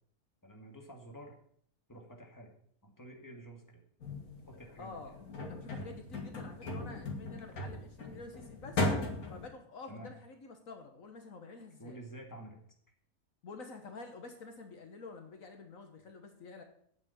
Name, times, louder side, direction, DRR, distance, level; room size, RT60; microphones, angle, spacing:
voice 1, 0.4-1.4 1.9-2.5 2.8-3.8 4.5-5.0 9.9-10.1 11.8-12.6, right 1 dB, 15° left, 1 dB, 2.1 m, -49 dB
sound 1, 4.0-9.5, left 2 dB, 80° left, 2.4 m, -37 dB
voice 2, 4.8-5.1 5.5-8.9 9.3-12.0 13.4-16.6, left 4 dB, 65° left, 5 dB, 1.6 m, -49 dB
8.9 x 7.1 x 8.1 m, 0.63 s
omnidirectional pair, 1.5 m